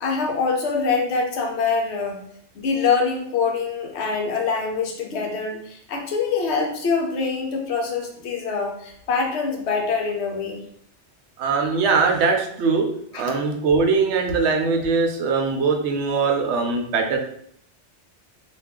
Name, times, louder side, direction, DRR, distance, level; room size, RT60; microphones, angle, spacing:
voice 1, 0.0-2.2 2.6-10.6 13.1-13.2, left 5 dB, 70° left, 1 dB, 0.9 m, -24 dB
voice 2, 11.4-12.9 13.1-17.2, right 4 dB, 75° right, 3 dB, 0.8 m, -21 dB
2.5 x 2.3 x 3.5 m, 0.67 s
omnidirectional pair, 1.2 m